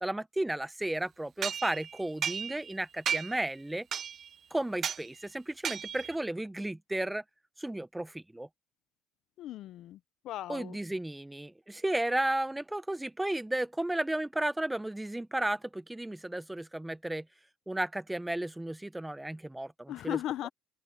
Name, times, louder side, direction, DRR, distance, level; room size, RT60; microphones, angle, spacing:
voice 1, 0.0-3.9 4.5-7.2 7.6-8.5 10.5-17.2 17.7-20.2, right 1 dB, 5° right, 0.7 m, -33 dB
sound 1, 1.4-2.7 3.1-3.5 3.9-4.3 4.8-5.1 5.6-6.2, right 8 dB, 40° right, 0.6 m, -34 dB
voice 2, 9.4-10.0 10.2-10.8 19.9-20.5, left 13 dB, 60° left, 0.6 m, -37 dB
cardioid pair, 130°, 0 cm